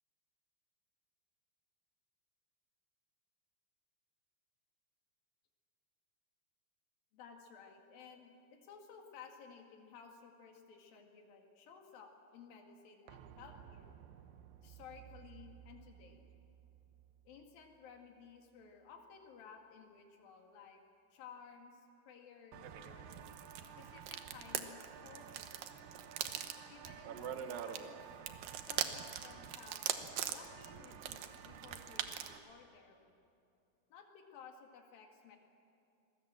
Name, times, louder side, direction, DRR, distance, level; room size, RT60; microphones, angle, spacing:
voice 1, 7.1-13.9 14.6-16.2 17.3-20.8 21.1-23.1 23.6-25.8 26.7-28.0 28.6-29.8 30.3-33.2 33.9-35.4, left 6 dB, 70° left, 2 dB, 3.8 m, -56 dB
sound 1, 13.1-18.7 19.0-19.1, right 10 dB, 90° right, 2.8 m, -58 dB
sound 2, 22.5-32.4, right 10 dB, 70° right, 2.6 m, -43 dB
27.0 x 21.0 x 7.5 m, 2.6 s
omnidirectional pair, 4.4 m